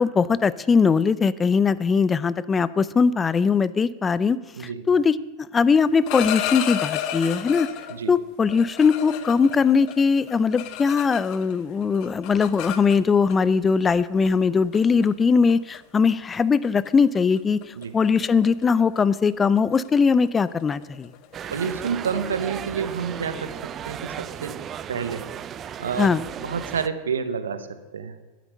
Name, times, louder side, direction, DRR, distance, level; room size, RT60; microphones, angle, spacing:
voice 1, 0.0-5.2 5.5-7.7 8.1-21.1 26.0-26.2, left 5 dB, 20° left, 18 dB, 0.5 m, -20 dB
voice 2, 4.6-4.9 7.9-8.1 17.8-17.9 21.4-24.6 24.9-25.3 25.8-28.2, right 6 dB, 85° right, 12 dB, 1.0 m, -29 dB
sound 1, 5.9-8.0 8.5-11.5 11.8-13.3 14.2-14.4 14.7-15.1 15.5-15.8 16.1-16.3 16.6-16.9 17.1-22.5, left 11 dB, 50° left, 1.1 m, -33 dB
sound 2, 21.3-26.9, right 9 dB, 35° right, 0.5 m, -35 dB
12.5 x 9.3 x 6.5 m, 1.3 s
hypercardioid pair, 95°, 0 cm